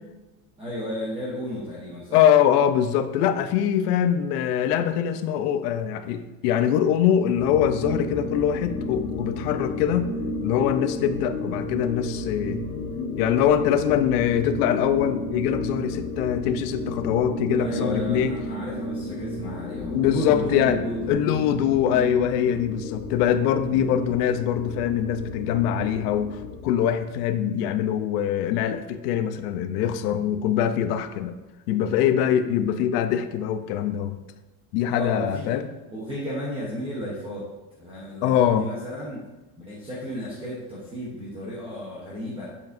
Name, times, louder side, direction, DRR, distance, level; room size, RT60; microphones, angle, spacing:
voice 1, 0.6-2.2 17.6-21.3 23.7-24.1 34.9-35.6 35.9-37.5 37.8-39.2 39.6-42.5, equal, 10° right, -7 dB, 0.9 m, -33 dB
voice 2, 2.1-10.1 10.4-12.6 13.2-18.4 19.9-20.8 21.1-31.3 31.7-34.2 34.7-35.7 38.2-38.7, left 9 dB, 80° left, 10 dB, 0.7 m, -23 dB
sound 1, 7.4-26.8, left 1 dB, 25° left, 0.6 m, -32 dB
8.3 x 7.0 x 2.6 m, 1.1 s
cardioid pair, 180°, 46 cm